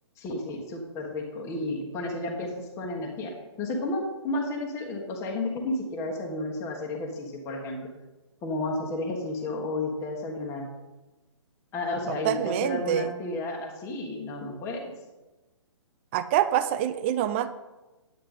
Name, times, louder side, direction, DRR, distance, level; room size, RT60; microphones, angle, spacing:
voice 1, 0.2-7.8 8.4-10.7 11.7-14.9, left 2 dB, 15° left, 0 dB, 1.3 m, -32 dB
voice 2, 12.1-13.1 16.1-17.5, right 11 dB, 25° right, 12 dB, 0.4 m, -26 dB
9.9 x 9.0 x 3.8 m, 1.1 s
figure-of-eight pair, 130°, 16 cm